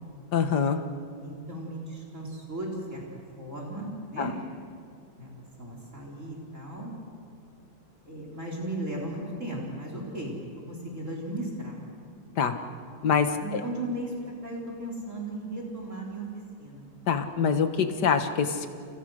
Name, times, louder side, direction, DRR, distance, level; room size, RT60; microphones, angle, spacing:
voice 1, 0.3-0.8 4.2-4.3 12.4-12.6 13.0-13.6 17.1-18.7, left 6 dB, 65° left, 8 dB, 2.0 m, -25 dB
voice 2, 1.2-3.0 3.4-4.4 5.2-6.9 8.1-11.8 13.4-14.1 14.4-16.3 16.6-16.9, right 1 dB, 40° right, -1 dB, 4.7 m, -36 dB
30.0 x 29.5 x 6.5 m, 2.4 s
omnidirectional pair, 1.9 m